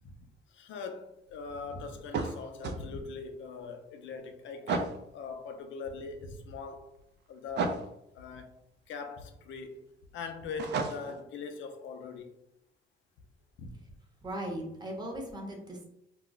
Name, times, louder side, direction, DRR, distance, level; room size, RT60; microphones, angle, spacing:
voice 1, 0.0-6.9 7.3-7.9 8.1-8.5 8.9-9.8 10.1-12.4 13.6-13.7, left 4 dB, 70° left, 6 dB, 0.5 m, -41 dB
sound 1, 2.1-2.8 4.7-5.0 7.6-7.9 10.6-11.2, right 4 dB, 60° right, 0.4 m, -32 dB
voice 2, 14.2-15.8, right 1 dB, 20° right, 0 dB, 0.8 m, -38 dB
2.3 x 2.1 x 3.8 m, 0.80 s
cardioid pair, 90°, 20 cm